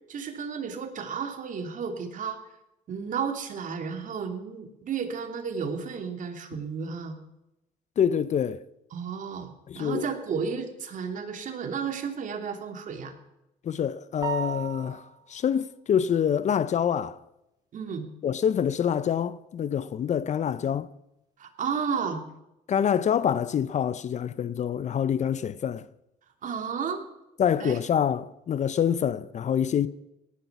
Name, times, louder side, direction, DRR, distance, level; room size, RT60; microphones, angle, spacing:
voice 1, 0.1-2.4 2.9-7.2 8.9-13.2 17.7-18.1 21.4-22.2 26.4-27.0 27.6-27.8, right 6 dB, 50° right, 2.8 m, -32 dB
voice 2, 8.0-8.6 9.7-10.1 13.6-17.2 18.2-20.9 22.7-25.9 27.4-29.9, left 8 dB, 45° left, 0.7 m, -26 dB
sound 1, 14.2-15.3, right 7 dB, 20° right, 2.8 m, -34 dB
17.5 x 11.5 x 6.0 m
cardioid pair, 110°, 17 cm